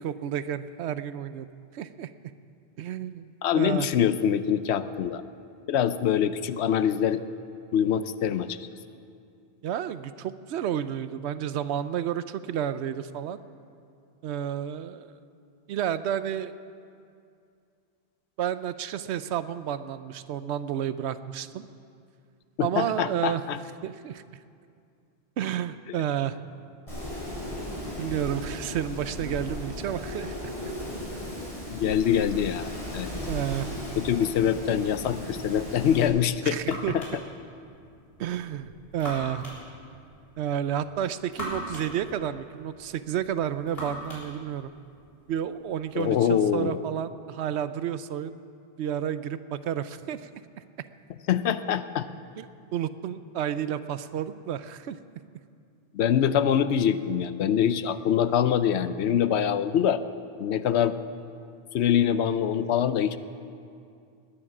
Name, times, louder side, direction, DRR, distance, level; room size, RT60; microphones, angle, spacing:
voice 1, 0.0-1.5 1.7-2.1 2.8-3.9 9.6-13.4 14.2-15.1 15.7-16.5 18.4-21.7 22.6-23.4 23.8-24.2 25.4-26.4 28.0-30.5 33.3-33.7 36.4-36.9 38.2-39.5 40.4-44.7 45.3-48.4 48.8-50.3 52.4-52.5 52.7-55.0, right 10 dB, 80° right, 13 dB, 0.9 m, -31 dB
voice 2, 3.4-5.2 5.7-7.2 7.7-8.6 22.6-23.6 31.7-33.1 34.0-37.0 45.9-46.8 51.3-52.1 55.9-60.0 60.4-61.0 61.7-63.2, left 9 dB, 80° left, 13 dB, 0.9 m, -24 dB
Wind, 26.9-36.0, left 1 dB, 30° left, 4.8 m, -36 dB
sound 1, 36.0-46.1, equal, 60° left, 4.1 m, -43 dB
20.0 x 10.0 x 6.0 m, 2.4 s
omnidirectional pair, 1.1 m